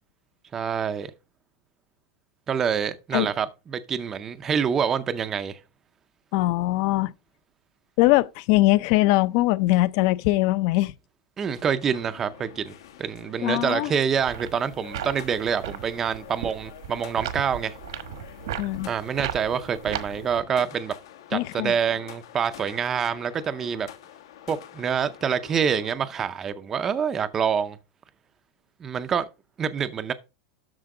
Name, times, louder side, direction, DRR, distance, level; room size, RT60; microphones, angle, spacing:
voice 1, 0.5-1.1 2.5-5.6 11.4-17.7 18.9-20.9 21.3-23.9 24.5-27.8 28.8-29.3 29.6-30.1, right 7 dB, 15° right, 0.5 m, -26 dB
voice 2, 6.3-7.1 8.0-10.9 13.4-13.9 18.6-18.9 21.3-21.7, left 18 dB, 40° left, 0.4 m, -21 dB
sound 1, 11.4-25.9, left 11 dB, 80° left, 1.6 m, -47 dB
sound 2, 14.1-20.4, right 10 dB, 70° right, 1.2 m, -36 dB
12.5 x 4.4 x 3.7 m
supercardioid pair, 180°, 2 cm